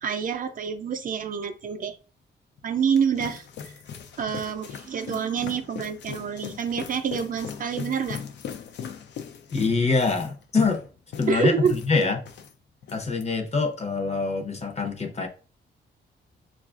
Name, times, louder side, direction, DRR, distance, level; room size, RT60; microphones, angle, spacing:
voice 1, 0.0-2.0 2.6-3.7 4.2-8.2 11.3-11.8, right 7 dB, 45° right, 0.4 m, -27 dB
sound 1, 2.6-12.5 12.8-13.2, left 7 dB, 70° left, 0.5 m, -38 dB
voice 2, 9.5-10.8 11.2-12.2 12.9-15.3, left 4 dB, 35° left, 0.8 m, -24 dB
5.8 x 2.4 x 2.4 m
wide cardioid pair, 130°, 19 cm